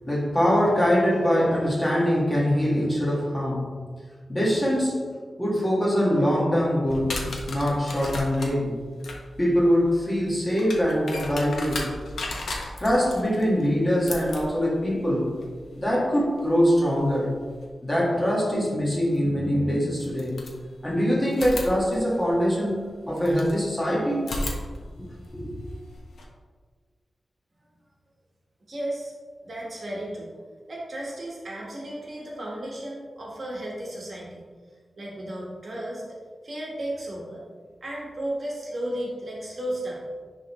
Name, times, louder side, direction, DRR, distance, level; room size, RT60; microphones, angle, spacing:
voice 1, 0.1-3.7 4.3-5.0 5.4-7.2 7.5-8.7 9.4-11.9 12.8-15.3 15.7-17.3 17.8-20.4 20.8-22.8 23.1-24.3 25.3-25.5, equal, 15° left, -5 dB, 1.7 m, -23 dB
sound 1, 6.9-17.7 19.2-19.3 20.0-20.9 21.3-23.6 24.2-26.2, left 2 dB, 85° left, 1.0 m, -37 dB
voice 2, 28.7-29.1 29.4-30.3 30.7-34.5 35.0-36.2 36.4-37.4 37.8-40.0, right 1 dB, 45° right, -4 dB, 1.4 m, -34 dB
9.9 x 3.6 x 3.1 m, 1.5 s
wide cardioid pair, 140°, 0 cm